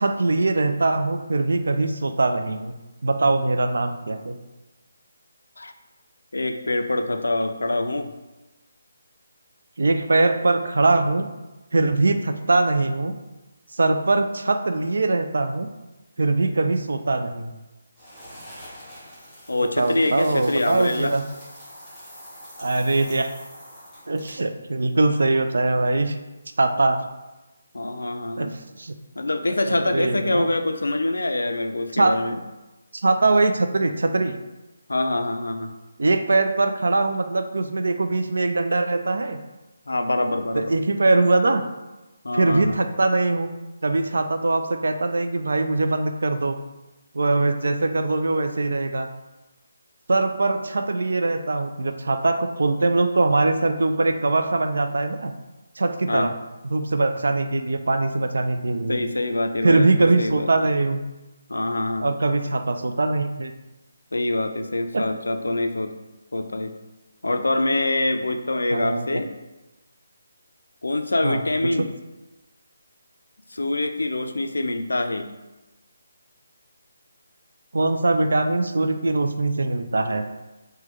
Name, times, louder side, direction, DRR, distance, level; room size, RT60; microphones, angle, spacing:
voice 1, 0.0-2.7 3.0-4.4 9.8-11.3 11.7-13.1 13.7-15.7 16.2-17.5 19.8-21.2 22.6-23.3 24.1-26.2 26.6-27.0 28.4-28.5 28.7-28.9 29.7-30.5 31.9-32.1 32.9-34.4 36.0-39.4 40.5-41.6 42.3-43.5 43.8-46.6 47.1-49.1 50.1-55.3 55.8-56.3 56.7-59.0 59.6-61.0 62.0-63.5 64.9-65.0 68.7-69.0 71.2-71.4 71.8-71.9 77.7-80.3, right 2 dB, 75° right, 8 dB, 0.3 m, -22 dB
voice 2, 6.3-8.1 19.5-21.1 27.7-28.5 29.2-32.4 34.9-35.7 39.9-40.7 42.2-42.8 56.1-56.3 58.9-59.9 60.2-60.5 61.5-62.1 64.1-65.9 66.3-66.7 67.2-69.3 70.8-71.9 73.5-75.3, left 2 dB, 90° left, 7 dB, 0.3 m, -25 dB
sound 1, 18.0-24.5, equal, ahead, 1.0 m, -44 dB
3.0 x 2.2 x 3.5 m, 1.1 s
figure-of-eight pair, 160°, 0 cm